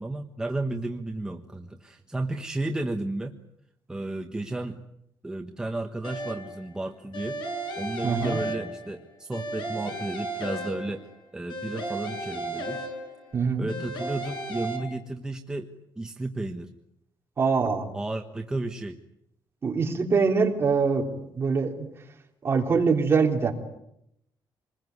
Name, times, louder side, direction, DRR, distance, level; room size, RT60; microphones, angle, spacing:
voice 1, 0.0-3.3 3.9-4.8 5.2-7.4 7.8-12.8 13.6-15.7 16.0-16.7 17.9-19.0, right 2 dB, 10° right, 4 dB, 1.2 m, -33 dB
sound 1, 6.0-6.6 7.1-9.0 9.3-11.1 11.5-13.3 13.7-14.8, right 2 dB, 70° left, 7.7 m, -34 dB
voice 2, 8.0-8.4 13.3-13.7 17.4-17.9 19.6-21.9 22.4-23.5, right 5 dB, 30° right, 2 dB, 3.5 m, -24 dB
27.0 x 21.5 x 9.6 m, 0.80 s
wide cardioid pair, 180°, 8 cm